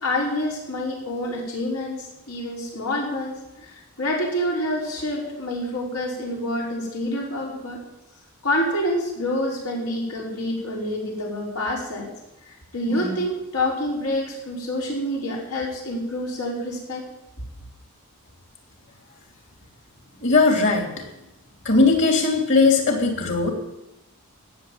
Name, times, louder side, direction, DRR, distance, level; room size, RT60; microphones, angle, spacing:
voice 1, 0.0-7.8 8.4-12.1 12.5-17.0, left 1 dB, 85° left, -3 dB, 5.2 m, -27 dB
voice 2, 20.2-20.9 21.6-23.5, left 3 dB, 55° left, 3 dB, 3.2 m, -18 dB
16.5 x 7.0 x 9.3 m, 0.91 s
head